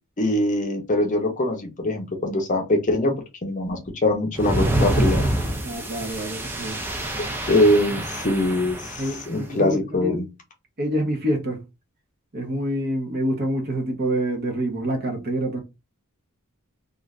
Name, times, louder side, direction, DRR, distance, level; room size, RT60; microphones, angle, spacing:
voice 1, 0.2-3.1 3.4-5.3 7.5-10.3, left 1 dB, 35° left, 0.6 m, -22 dB
sound 1, 4.3-9.3, right 1 dB, 10° right, 0.4 m, -26 dB
voice 2, 5.6-6.8 9.0-10.3 10.8-11.6 12.3-15.6, right 1 dB, 45° right, 0.8 m, -27 dB
2.5 x 2.4 x 3.1 m
head